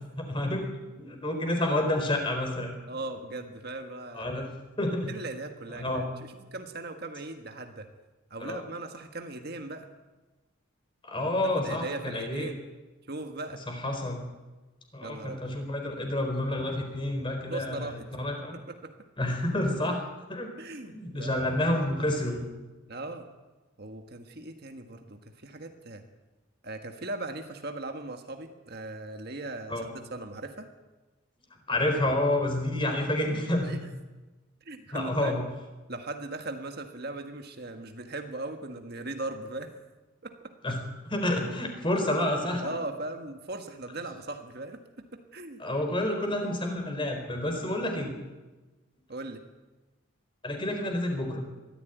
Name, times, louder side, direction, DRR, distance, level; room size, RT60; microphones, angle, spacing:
voice 1, 0.2-0.7 1.0-2.8 4.1-4.5 4.8-5.1 5.7-6.1 8.4-8.6 11.0-12.5 13.7-14.2 14.9-18.6 19.2-20.0 20.3-20.5 20.9-22.4 29.7-29.9 31.7-33.8 34.9-35.4 40.6-40.8 41.1-42.7 45.6-48.1 50.4-51.4, left 1 dB, 25° left, 4 dB, 4.3 m, -29 dB
voice 2, 2.9-4.3 5.1-7.9 8.3-9.9 11.1-12.6 13.1-13.6 15.0-15.6 17.5-18.1 18.5-18.9 20.6-21.6 22.9-23.3 23.8-26.0 26.6-30.7 33.6-33.8 34.7-35.5 35.9-39.8 40.2-40.5 42.6-45.6 49.1-49.4, right 2 dB, 45° right, 5 dB, 1.6 m, -39 dB
23.0 x 14.0 x 9.3 m, 1.2 s
head